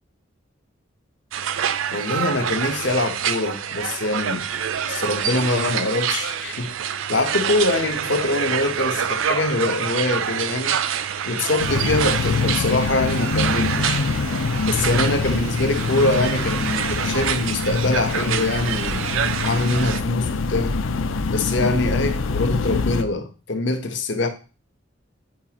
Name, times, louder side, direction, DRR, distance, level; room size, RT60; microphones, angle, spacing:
sound 1, 1.3-20.0, right 8 dB, 75° right, 0.4 m, -27 dB
voice 1, 1.9-4.4 4.9-6.7 7.1-10.8 11.3-14.0 14.6-19.0 19.4-20.8 21.3-24.3, left 2 dB, 65° left, 1.0 m, -24 dB
sound 2, 11.6-23.0, left 4 dB, 80° left, 0.6 m, -24 dB
9.0 x 4.8 x 3.0 m
head